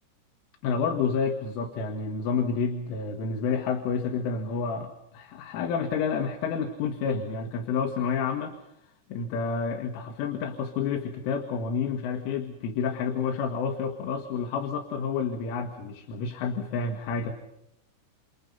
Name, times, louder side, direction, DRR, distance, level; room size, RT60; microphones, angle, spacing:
voice 1, 0.6-8.6 9.1-17.3, left 5 dB, 80° left, 4 dB, 4.0 m, -29 dB
29.5 x 28.5 x 5.5 m, 0.81 s
omnidirectional pair, 5.8 m